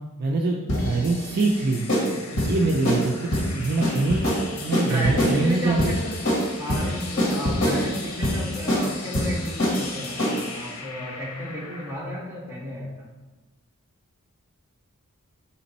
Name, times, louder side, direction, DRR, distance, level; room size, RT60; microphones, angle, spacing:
voice 1, 0.2-0.6 0.8-4.2 4.6-5.9, right 3 dB, 45° right, -1 dB, 0.5 m, -24 dB
sound 1, 0.7-10.6, equal, 60° left, 1.4 m, -25 dB
sound 2, 1.2-11.9, left 4 dB, 80° left, 0.8 m, -41 dB
voice 2, 4.7-6.2 6.6-13.1, equal, 15° right, -6 dB, 1.5 m, -32 dB
5.9 x 4.3 x 4.1 m, 1.2 s
head